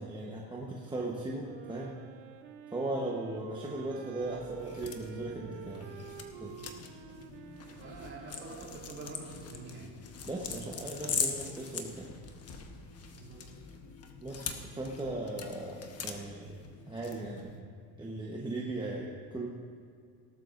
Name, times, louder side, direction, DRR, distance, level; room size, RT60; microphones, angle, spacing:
voice 1, 0.0-1.9 2.7-5.9 6.3-6.6 10.2-12.1 14.2-17.5 18.0-19.5, right 2 dB, 10° right, -3 dB, 1.0 m, -38 dB
Wind instrument woodwind instrument, 1.4-9.8, right 9 dB, 70° right, 0.9 m, -49 dB
sound 1, 4.2-17.6, left 6 dB, 30° left, 1.0 m, -42 dB
voice 2, 7.7-9.9 13.2-13.4, right 3 dB, 30° right, -3 dB, 3.5 m, -46 dB
18.5 x 12.0 x 2.6 m, 2.2 s
cardioid pair, 135°, 48 cm